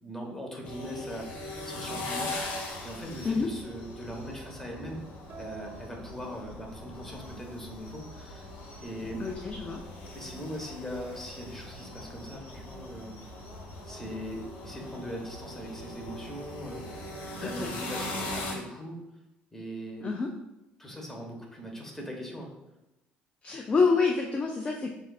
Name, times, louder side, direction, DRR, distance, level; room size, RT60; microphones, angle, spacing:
voice 1, 0.0-5.0 5.4-8.5 8.8-9.2 10.1-13.2 13.8-16.8 17.3-19.0 19.5-20.1 20.8-22.5, equal, 10° left, 0 dB, 1.2 m, -40 dB
sound 1, 0.6-18.5, left 1 dB, 70° left, 1.0 m, -40 dB
sound 2, 5.3-7.1, right 6 dB, 50° right, 0.6 m, -48 dB
voice 2, 9.2-9.8 17.4-17.7 20.0-20.3 23.4-24.9, left 4 dB, 30° left, 1 dB, 0.4 m, -27 dB
7.4 x 2.5 x 2.4 m, 0.96 s
supercardioid pair, 90°, 4 cm